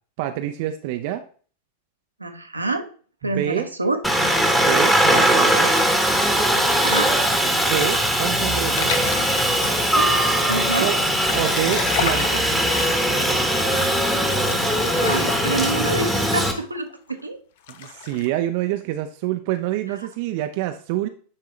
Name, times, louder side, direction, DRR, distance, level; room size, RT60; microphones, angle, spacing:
voice 1, 0.2-1.2 3.2-3.7 4.5-5.7 7.6-8.9 10.8-10.9 11.3-12.5 17.8-21.1, right 12 dB, 50° right, 8 dB, 0.4 m, -26 dB
voice 2, 2.2-2.8 3.2-4.0 6.6-7.2 9.9-11.0 15.0-17.4, right 2 dB, 85° right, 6 dB, 0.8 m, -27 dB
Aircraft, 4.0-16.5, equal, 5° left, 1.1 m, -20 dB
sound 1, 7.3-15.8 16.2-16.3 16.5-17.2 17.7-18.3, left 8 dB, 55° left, 0.6 m, -34 dB
9.6 x 3.7 x 3.2 m, 0.42 s
figure-of-eight pair, 90°, 0 cm